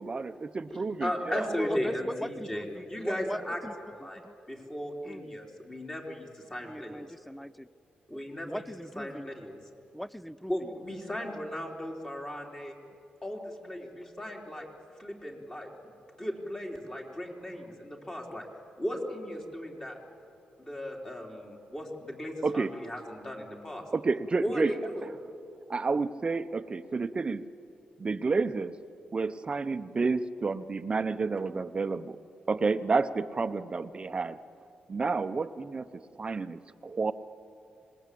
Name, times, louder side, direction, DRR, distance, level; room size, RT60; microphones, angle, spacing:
voice 1, 0.0-1.5 22.4-22.7 23.9-24.7 25.7-27.4 28.0-28.7 29.1-32.2 32.5-34.4 34.9-35.9 36.2-37.1, right 4 dB, 35° right, 11 dB, 0.8 m, -30 dB
voice 2, 0.7-3.6 3.9-4.2 4.5-7.1 8.1-8.6 9.0-9.6 10.5-12.8 13.2-14.7 15.0-15.9 16.2-18.5 18.8-20.0 20.6-23.8 24.4-25.1, equal, 20° left, 0 dB, 3.9 m, -36 dB
voice 3, 1.4-3.7 4.0-4.3 5.1-5.2 6.7-7.7 8.1-8.2 8.5-9.3 9.9-10.7, equal, ahead, 19 dB, 0.5 m, -39 dB
26.0 x 20.5 x 8.5 m, 2.6 s
cardioid pair, 90°, 3 cm